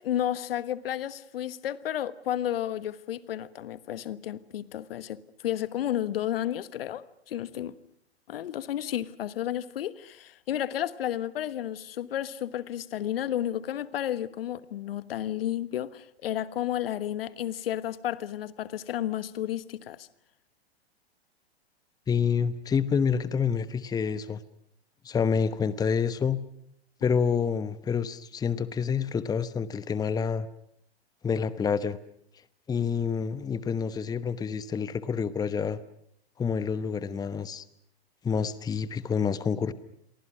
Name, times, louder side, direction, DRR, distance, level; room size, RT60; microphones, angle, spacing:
voice 1, 0.0-7.8 8.3-20.1, left 11 dB, 65° left, 1.4 m, -32 dB
voice 2, 22.1-24.4 25.0-26.4 27.0-30.5 31.2-32.0 32.7-35.8 36.4-37.6 38.2-39.7, left 6 dB, 10° left, 1.0 m, -28 dB
30.0 x 23.5 x 6.2 m
hypercardioid pair, 110°, 32 cm